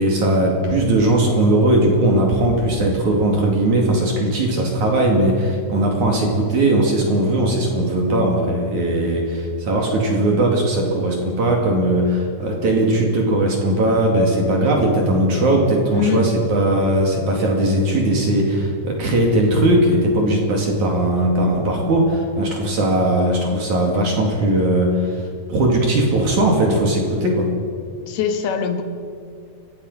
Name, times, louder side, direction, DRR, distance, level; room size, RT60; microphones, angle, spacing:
voice 1, 0.0-27.5, right 1 dB, 50° right, 0 dB, 3.5 m, -18 dB
voice 2, 15.9-16.2 28.1-28.8, left 7 dB, 70° left, 6 dB, 3.3 m, -22 dB
29.5 x 16.0 x 5.6 m, 2.2 s
omnidirectional pair, 4.7 m